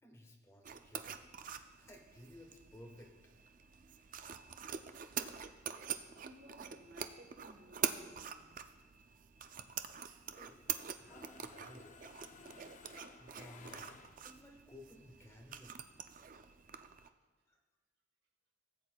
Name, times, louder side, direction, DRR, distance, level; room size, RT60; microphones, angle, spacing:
voice 1, 0.0-1.4 1.8-3.1 4.0-4.1 10.3-10.6 11.1-12.0 13.2-15.8 17.5-17.6, left 1 dB, 15° left, 1 dB, 1.1 m, -57 dB
sound 1, 0.6-17.1, right 8 dB, 45° right, 0.4 m, -45 dB
voice 2, 6.1-8.5, right 1 dB, 60° right, 3 dB, 1.2 m, -58 dB
Mechanisms, 9.8-10.7 11.0-14.6, left 4 dB, 40° left, 0.5 m, -57 dB
17.5 x 8.2 x 2.3 m, 1.4 s
head